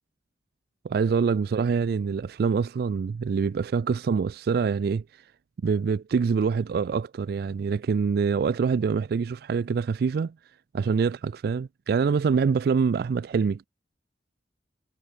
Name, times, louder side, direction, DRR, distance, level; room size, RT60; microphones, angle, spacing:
voice 1, 0.8-5.0 5.6-10.3 10.7-13.6, right 5 dB, 60° right, 0.3 m, -25 dB
head